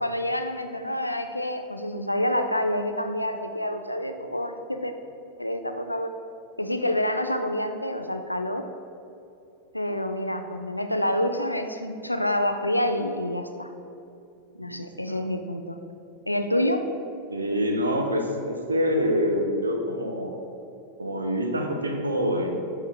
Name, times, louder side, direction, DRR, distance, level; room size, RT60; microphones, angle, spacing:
voice 1, 0.0-4.9 5.4-6.1 6.6-8.6 9.7-13.7 14.6-15.8 16.3-16.8, left 1 dB, 85° left, 7 dB, 0.4 m, -27 dB
voice 2, 14.6-15.2 17.3-20.4 21.0-22.6, equal, 75° right, 3 dB, 0.8 m, -26 dB
8.5 x 4.6 x 3.3 m, 2.7 s
figure-of-eight pair, 90°, 0 cm